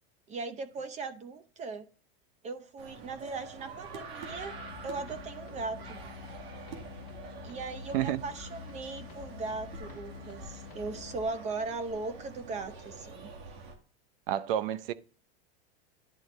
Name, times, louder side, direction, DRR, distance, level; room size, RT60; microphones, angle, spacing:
voice 1, 0.3-1.9 2.4-4.5 4.8-6.0 7.4-13.3, right 3 dB, 25° right, 0.7 m, -38 dB
sound 1, 2.8-13.7, right 4 dB, 85° right, 2.1 m, -46 dB
sound 2, 4.3-11.3, left 10 dB, 80° left, 1.1 m, -48 dB
voice 2, 14.3-14.9, right 11 dB, 65° right, 0.7 m, -29 dB
11.0 x 3.8 x 3.2 m
supercardioid pair, 145°, 30 cm